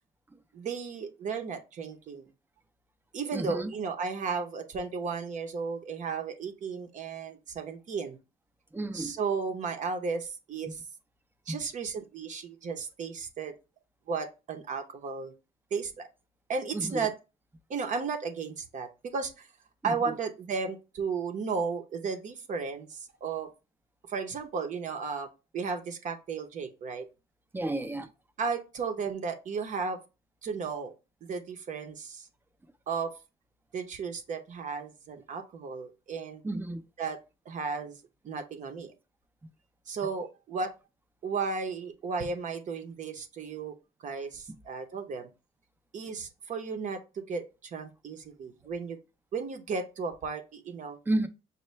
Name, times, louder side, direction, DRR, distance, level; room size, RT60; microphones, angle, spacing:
voice 1, 0.5-2.3 3.1-8.2 8.9-10.8 11.5-13.5 14.1-15.3 15.7-16.1 16.5-17.1 17.7-19.5 19.8-23.5 24.1-25.3 25.5-27.0 28.4-30.0 30.4-30.9 31.3-32.3 32.9-33.1 33.7-36.4 37.0-37.2 37.5-38.0 38.2-38.9 39.9-40.7 41.2-43.7 44.0-45.3 45.9-49.0 49.3-51.0, right 5 dB, 50° right, 0.7 m, -34 dB
voice 2, 3.3-3.7 8.7-9.2 11.5-11.6 16.7-17.1 19.8-20.1 27.5-28.1 36.4-36.8 51.1-51.3, right 2 dB, 10° right, 0.5 m, -32 dB
5.5 x 2.2 x 3.2 m
cardioid pair, 110°, 17 cm